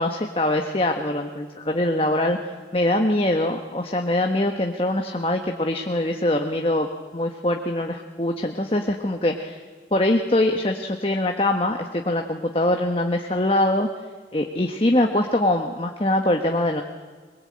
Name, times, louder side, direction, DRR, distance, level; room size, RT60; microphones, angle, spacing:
voice 1, 0.0-2.4 2.7-6.9 7.1-9.6 9.9-13.9 14.3-16.8, left 1 dB, 30° left, 3 dB, 1.2 m, -23 dB
22.5 x 21.5 x 8.7 m, 1.5 s
head